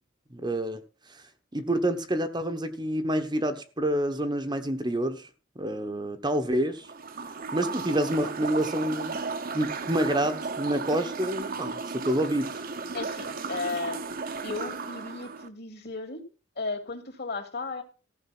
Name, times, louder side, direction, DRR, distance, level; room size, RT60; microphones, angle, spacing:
voice 1, 0.3-0.8 1.1-1.2 1.5-5.3 5.6-6.9 7.5-9.2 9.5-12.6, right 1 dB, 20° right, 1.0 m, -28 dB
sound 1, 6.8-15.5, right 4 dB, 45° right, 0.9 m, -35 dB
voice 2, 12.9-14.0 14.4-16.2 16.6-17.8, left 3 dB, 50° left, 2.9 m, -34 dB
14.5 x 6.7 x 6.0 m
head